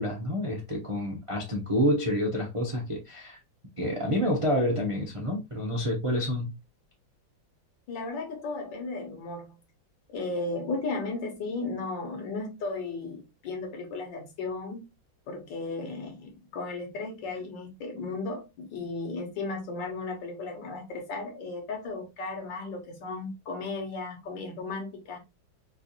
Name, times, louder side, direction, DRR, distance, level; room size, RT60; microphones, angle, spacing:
voice 1, 0.0-3.4 3.8-6.5, equal, 35° right, 0.4 m, -28 dB
voice 2, 7.9-9.6 10.1-14.8 15.3-25.2, left 3 dB, 70° left, 1.6 m, -35 dB
4.6 x 2.5 x 2.8 m
omnidirectional pair, 2.2 m